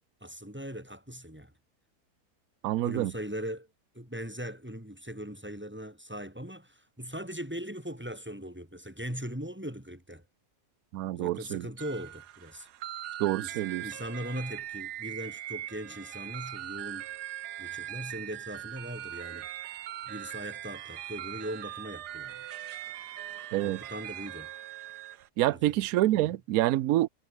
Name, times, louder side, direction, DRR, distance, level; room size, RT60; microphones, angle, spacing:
voice 1, 0.2-1.5 2.8-3.7 3.9-10.2 11.1-12.7 13.4-17.1 17.6-19.6 20.1-22.5 23.6-24.5 25.5-25.7 26.1-26.4, equal, 5° right, 6.5 m, -40 dB
voice 2, 2.6-3.1 10.9-11.6 13.2-13.8 23.5-23.8 25.4-27.1, right 15 dB, 70° right, 1.0 m, -27 dB
sound 1, 11.8-25.3, right 12 dB, 90° right, 1.4 m, -41 dB
omnidirectional pair, 1.7 m